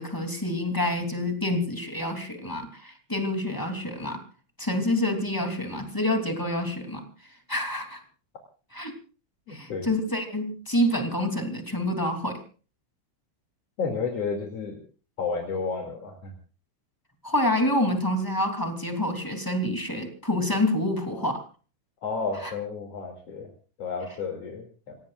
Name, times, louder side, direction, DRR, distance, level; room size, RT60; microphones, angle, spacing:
voice 1, 0.0-4.2 4.6-8.0 8.7-8.9 9.5-12.4 17.2-21.4 22.4-22.5, left 1 dB, 10° left, 4 dB, 1.4 m, -27 dB
voice 2, 9.5-9.9 13.8-14.8 15.2-16.3 21.1-21.2 22.0-23.5 23.8-25.0, left 5 dB, 40° left, 1 dB, 2.8 m, -31 dB
28.5 x 17.5 x 2.5 m, 0.38 s
omnidirectional pair, 5.7 m